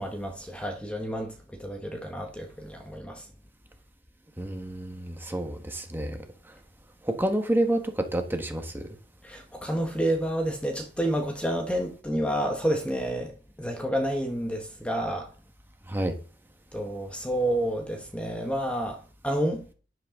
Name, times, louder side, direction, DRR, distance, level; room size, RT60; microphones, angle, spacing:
voice 1, 0.0-3.3 9.2-15.3 16.7-19.7, right 1 dB, 5° left, 1.4 m, -29 dB
voice 2, 4.4-6.2 7.0-8.8 15.9-16.1, right 1 dB, 10° right, 1.7 m, -28 dB
11.0 x 11.0 x 3.9 m
head